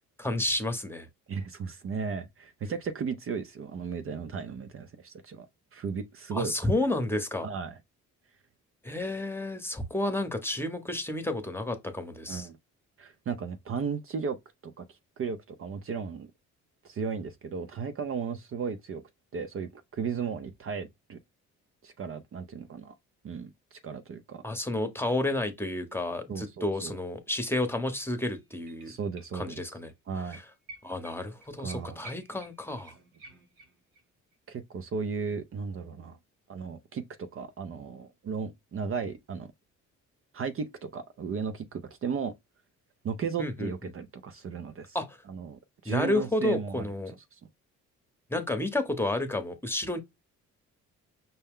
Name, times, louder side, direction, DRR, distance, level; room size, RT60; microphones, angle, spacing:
voice 1, 0.2-1.1 6.3-7.5 8.8-12.5 24.4-28.9 29.3-29.9 30.3-30.4 30.8-32.9 43.4-43.7 44.9-45.2 45.8-47.1 48.3-50.0, left 1 dB, 10° left, 0.9 m, -31 dB
voice 2, 1.3-5.5 5.7-6.7 7.4-7.8 12.3-12.6 13.0-14.4 14.6-16.3 16.8-19.0 19.3-21.2 21.8-22.9 23.2-24.4 26.3-27.0 28.9-29.6 30.1-30.4 31.6-32.0 34.5-36.2 36.5-39.5 40.3-42.4 43.0-45.0 45.3-46.9 47.3-47.4, right 5 dB, 45° right, 0.6 m, -35 dB
sound 1, 28.3-29.6 29.9-30.0 30.3-34.0 34.3-34.4, right 2 dB, 85° right, 1.4 m, -52 dB
5.5 x 2.2 x 3.6 m
cardioid pair, 90°, 30 cm